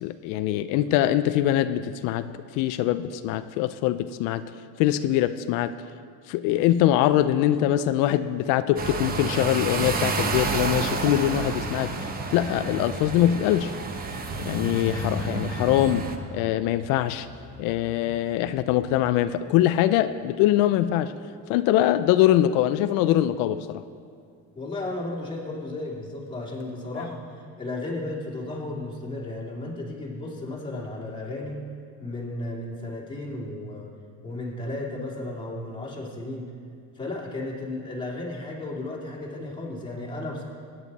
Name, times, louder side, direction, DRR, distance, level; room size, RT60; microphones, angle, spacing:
voice 1, 0.0-2.3 2.6-4.4 4.8-5.8 6.3-11.9 12.3-13.7 14.4-16.1 16.3-17.3 17.6-21.1 21.5-23.8, left 13 dB, 90° left, 11 dB, 0.5 m, -23 dB
sound 1, 8.8-16.2, right 4 dB, 30° right, 1.0 m, -30 dB
sound 2, 13.5-20.4 26.6-26.7 26.9-27.1, left 3 dB, 45° left, 1.2 m, -41 dB
voice 2, 24.6-27.3 27.6-31.6 32.0-33.9 34.2-36.5 36.9-40.4, left 2 dB, 15° left, -3 dB, 2.5 m, -34 dB
21.0 x 9.6 x 4.1 m, 2.2 s
cardioid pair, 145°, 32 cm